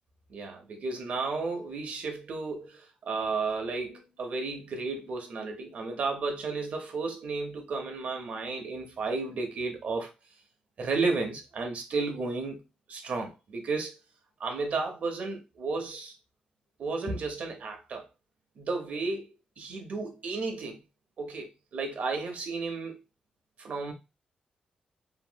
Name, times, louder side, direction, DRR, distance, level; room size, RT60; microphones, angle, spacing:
voice 1, 0.3-10.1 10.8-12.6 12.9-13.9 14.4-16.1 16.8-18.1 18.6-19.3 19.6-20.8 21.2-23.0 23.6-23.9, right 3 dB, 55° right, 0.8 m, -33 dB
2.9 x 2.8 x 2.2 m
wide cardioid pair, 165°, 3 cm